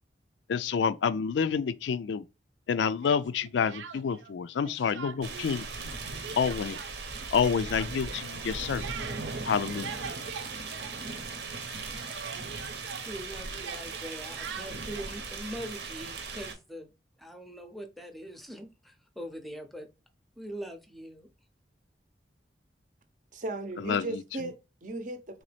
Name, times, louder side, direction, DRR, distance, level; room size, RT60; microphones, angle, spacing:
voice 1, 0.5-2.2 2.7-5.7 6.3-6.8 7.3-8.8 9.4-9.9 23.8-24.2, left 6 dB, 80° left, 0.4 m, -28 dB
Speech, 3.0-4.3 4.6-5.5 5.8-11.5 11.7-15.1, right 6 dB, 90° right, 0.5 m, -44 dB
sound 1, 5.2-16.5, right 4 dB, 75° right, 0.9 m, -38 dB
voice 2, 13.1-16.9 17.2-19.9 20.4-21.3, equal, ahead, 0.6 m, -42 dB
voice 3, 23.3-25.4, right 2 dB, 45° right, 0.7 m, -37 dB
3.9 x 3.0 x 3.3 m
head